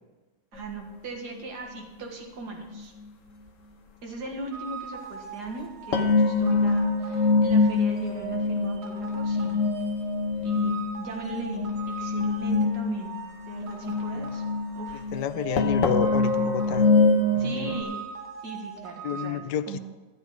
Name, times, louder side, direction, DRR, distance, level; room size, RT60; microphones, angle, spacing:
voice 1, 0.5-2.9 4.0-9.7 10.4-13.2 13.5-14.4 14.8-15.0 17.4-18.0 18.4-19.8, right 3 dB, 75° right, 0 dB, 2.1 m, -39 dB
sound 1, 0.6-0.7 2.7-2.8 5.9-17.8, left 3 dB, 55° left, 1.3 m, -25 dB
sound 2, 4.5-19.3, right 6 dB, 45° right, 1.2 m, -41 dB
voice 2, 15.1-16.9 17.3-17.7 19.0-19.8, left 9 dB, 90° left, 12 dB, 1.3 m, -29 dB
13.0 x 9.4 x 4.6 m, 1.2 s
omnidirectional pair, 1.8 m